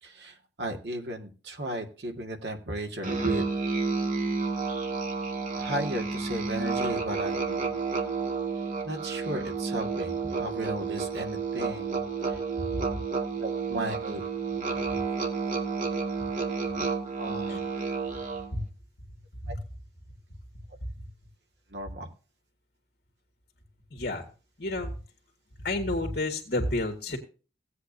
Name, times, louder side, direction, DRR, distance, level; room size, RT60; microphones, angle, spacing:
voice 1, 0.0-3.4 5.5-7.7 8.8-12.4 13.4-14.2 17.2-17.6 19.5-19.6 21.7-22.1, right 1 dB, 70° right, 3 dB, 2.0 m, -35 dB
Musical instrument, 3.0-18.6, right 4 dB, 50° right, 2.1 m, -31 dB
voice 2, 23.9-24.2 24.6-24.9 25.6-27.2, left 2 dB, 60° left, 4 dB, 1.8 m, -30 dB
17.0 x 8.2 x 2.7 m, 0.35 s
head